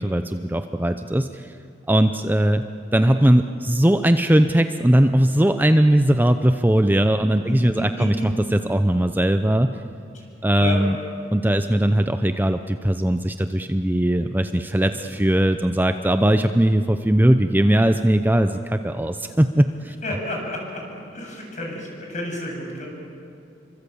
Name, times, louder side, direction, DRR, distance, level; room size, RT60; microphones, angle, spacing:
voice 1, 0.0-1.5 1.9-2.6 2.9-9.7 10.4-11.0 11.3-20.0, right 1 dB, 10° right, 8 dB, 0.7 m, -19 dB
voice 2, 7.4-8.1 10.1-10.2 10.6-10.8 14.9-15.0 20.0-20.8 21.1-22.9, left 1 dB, 45° left, 0 dB, 7.9 m, -31 dB
28.5 x 24.5 x 8.6 m, 2.6 s
head